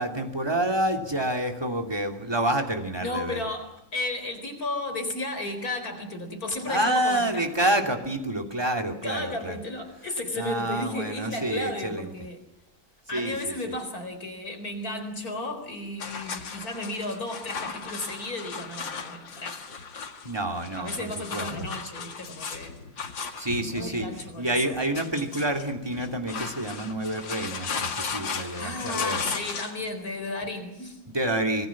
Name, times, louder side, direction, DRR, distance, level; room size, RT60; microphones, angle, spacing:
voice 1, 0.0-3.4 6.7-9.6 10.4-12.1 13.1-13.7 20.2-21.7 23.4-29.2 31.1-31.7, right 1 dB, 10° right, 5 dB, 2.8 m, -28 dB
voice 2, 3.0-7.5 9.0-12.4 13.1-19.6 20.8-22.8 23.8-24.6 28.6-31.0, left 2 dB, 45° left, 6 dB, 4.7 m, -34 dB
sound 1, 16.0-29.9, left 5 dB, 70° left, 2.8 m, -36 dB
26.0 x 21.0 x 7.4 m, 0.89 s
omnidirectional pair, 2.1 m